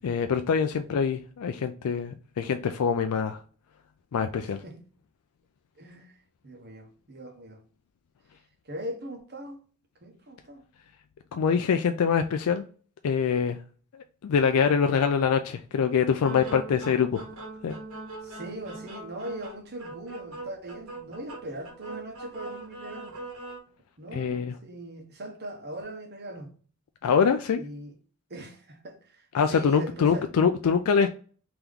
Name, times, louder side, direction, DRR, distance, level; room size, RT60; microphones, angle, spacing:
voice 1, 0.0-3.4 4.1-4.6 11.3-12.6 13.0-13.6 14.2-17.2 17.6-17.7 24.1-24.5 27.0-27.6 29.3-31.1, left 6 dB, 80° left, 0.4 m, -24 dB
voice 2, 5.8-7.6 8.6-9.6 10.0-10.6 17.1-17.2 18.2-23.2 24.0-26.5 27.6-27.9 28.3-30.3, right 1 dB, 50° right, 1.0 m, -40 dB
sound 1, 16.2-23.6, right 2 dB, 70° right, 1.3 m, -41 dB
3.4 x 2.9 x 3.6 m
head